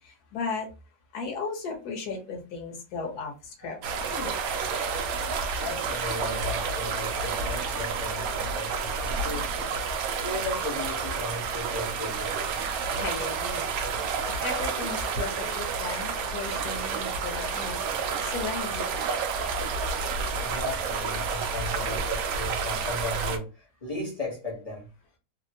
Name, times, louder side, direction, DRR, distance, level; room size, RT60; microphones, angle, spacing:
voice 1, 0.3-0.7 1.1-3.3 3.6-4.5 12.9-13.7 14.4-17.8 18.3-18.8, left 4 dB, 65° left, 1.4 m, -35 dB
sound 1, 3.8-23.4, right 5 dB, 70° right, 0.9 m, -30 dB
voice 2, 5.6-9.7 10.2-12.6 20.4-24.9, left 2 dB, 35° left, 0.6 m, -36 dB
3.3 x 2.1 x 2.7 m
omnidirectional pair, 1.9 m